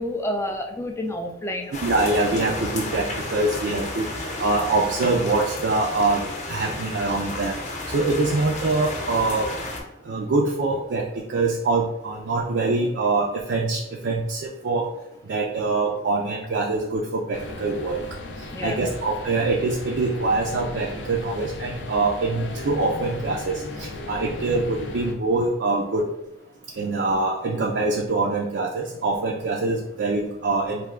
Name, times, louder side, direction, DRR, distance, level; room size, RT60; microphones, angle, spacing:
voice 1, 0.0-1.7 18.5-18.9, left 1 dB, 15° left, 3 dB, 0.3 m, -29 dB
sound 1, 1.7-9.8, left 2 dB, 40° left, 0.7 m, -32 dB
voice 2, 1.8-4.1 4.4-6.2 6.5-7.6 7.9-9.5 10.1-11.0 11.3-14.9 15.3-18.0 18.6-26.0 26.8-30.8, right 3 dB, 70° right, -1 dB, 0.4 m, -24 dB
sound 2, 17.3-25.1, left 2 dB, 80° left, 0.5 m, -36 dB
3.2 x 2.2 x 3.6 m, 0.93 s
head